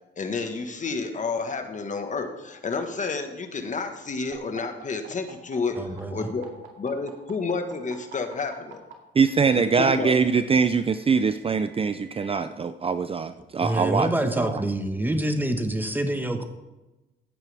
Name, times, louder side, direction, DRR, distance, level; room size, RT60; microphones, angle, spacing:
voice 1, 0.2-6.5 6.8-8.8 9.6-10.2, left 4 dB, 40° left, 6 dB, 1.5 m, -30 dB
sound 1, 4.3-8.9 10.1-12.3, right 8 dB, 75° right, 2.3 m, -48 dB
voice 2, 5.8-6.3 13.6-16.4, right 1 dB, 10° right, 6 dB, 1.3 m, -26 dB
voice 3, 9.2-14.1 14.4-14.6, right 5 dB, 30° right, 11 dB, 0.5 m, -23 dB
15.5 x 8.9 x 3.5 m, 1.0 s
cardioid pair, 90°, 20 cm